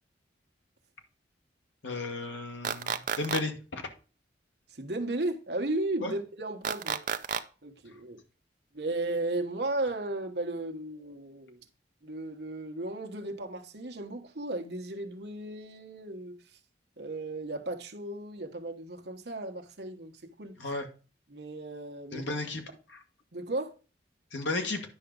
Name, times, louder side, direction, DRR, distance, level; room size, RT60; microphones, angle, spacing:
voice 1, 1.8-3.8 6.0-6.1 20.6-20.9 22.1-22.6 22.9-23.0 24.3-24.8, left 2 dB, 80° left, 1.5 m, -34 dB
sound 1, 2.6-3.4 6.6-7.4, right 7 dB, 45° right, 0.5 m, -30 dB
voice 2, 4.8-7.0 7.6-8.2 8.7-11.6 12.0-16.4 17.0-20.6 21.3-22.3 23.3-23.7, right 2 dB, 65° right, 1.1 m, -35 dB
10.0 x 5.9 x 3.8 m
head